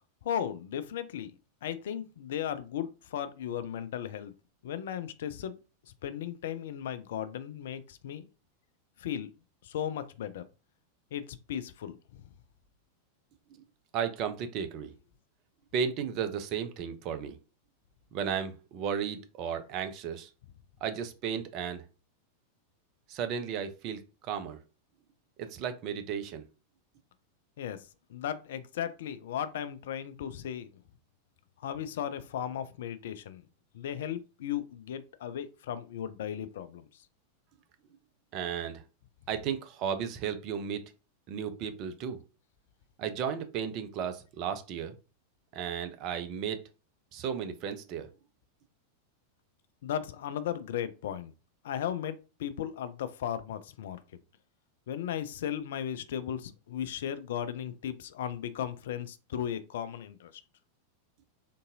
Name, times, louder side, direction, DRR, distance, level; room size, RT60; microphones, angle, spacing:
voice 1, 0.2-1.3 1.6-4.3 4.6-5.5 6.0-8.3 9.0-9.3 9.6-10.4 11.1-12.2 27.6-30.8 31.6-33.4 33.7-37.0 49.8-51.3 51.6-54.0 54.9-60.4, left 9 dB, 60° left, 0.3 m, -36 dB
voice 2, 13.9-14.9 15.7-17.4 18.1-20.3 20.8-21.8 23.1-24.6 25.4-26.4 38.3-38.8 39.3-40.8 41.3-42.2 43.0-44.9 45.5-46.6 47.1-48.1, right 7 dB, 40° right, 0.5 m, -34 dB
3.6 x 2.6 x 2.6 m
figure-of-eight pair, 90°, 0 cm